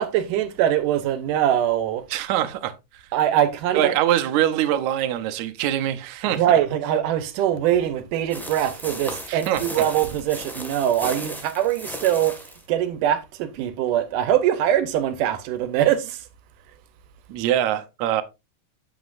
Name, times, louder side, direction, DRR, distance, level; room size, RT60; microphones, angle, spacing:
voice 1, 0.0-2.0 3.1-3.9 6.2-12.4 12.7-16.3, right 11 dB, 90° right, 2.4 m, -22 dB
voice 2, 2.1-2.7 3.7-6.4 9.3-9.6 17.3-18.2, right 11 dB, 75° right, 2.1 m, -23 dB
sound 1, 8.3-12.6, equal, ahead, 0.4 m, -36 dB
8.4 x 8.0 x 2.5 m
omnidirectional pair, 3.6 m